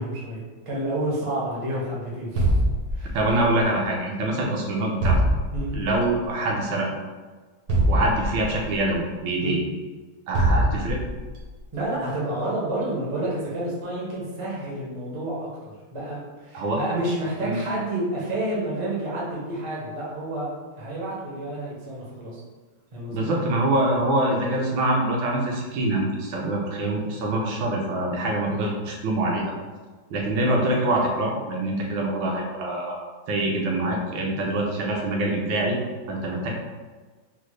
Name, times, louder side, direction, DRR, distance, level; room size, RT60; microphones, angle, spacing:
voice 1, 0.0-2.5 2.9-3.1 5.5-5.7 9.4-9.6 11.7-20.5 20.8-22.4 22.9-23.3 26.4-26.5, right 1 dB, 40° right, -6 dB, 0.4 m, -30 dB
sound 1, 2.4-3.5 5.0-6.0 7.7-8.8 10.3-11.3, right 1 dB, 65° right, 1.1 m, -22 dB
voice 2, 3.1-5.2 5.7-6.9 7.9-9.6 10.3-11.0 16.5-16.8 17.4-17.6 23.1-29.4 30.1-33.0 33.3-35.8 36.1-36.5, right 1 dB, 80° right, -1 dB, 1.4 m, -25 dB
3.9 x 2.1 x 3.1 m, 1.4 s
omnidirectional pair, 2.1 m